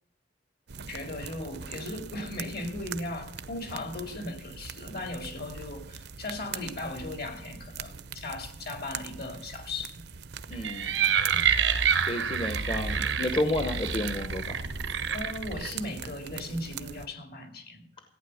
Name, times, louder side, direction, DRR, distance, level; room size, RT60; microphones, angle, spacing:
sound 1, 0.7-17.1, right 6 dB, 65° right, 0.7 m, -42 dB
voice 1, 0.8-10.0 11.1-11.4 15.1-17.9, left 2 dB, 60° left, 5 dB, 2.3 m, -37 dB
voice 2, 10.5-11.0 12.0-14.5, left 1 dB, 30° left, 6 dB, 0.9 m, -31 dB
sound 2, 10.5-15.7, right 7 dB, 90° right, 1.1 m, -28 dB
15.0 x 9.2 x 6.4 m, 0.65 s
head